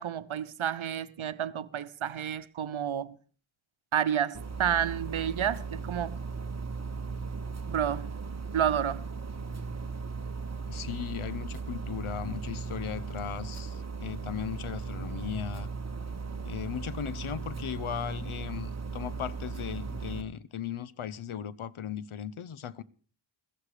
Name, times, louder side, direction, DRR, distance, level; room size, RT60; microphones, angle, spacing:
voice 1, 0.0-3.1 3.9-6.2 7.7-8.2 8.5-9.0, right 9 dB, 80° right, 0.9 m, -30 dB
sound 1, 4.3-20.2, right 4 dB, 35° right, 1.2 m, -37 dB
voice 2, 10.7-15.7 16.4-22.8, left 9 dB, 85° left, 0.8 m, -37 dB
15.0 x 14.5 x 4.9 m
wide cardioid pair, 95°, 48 cm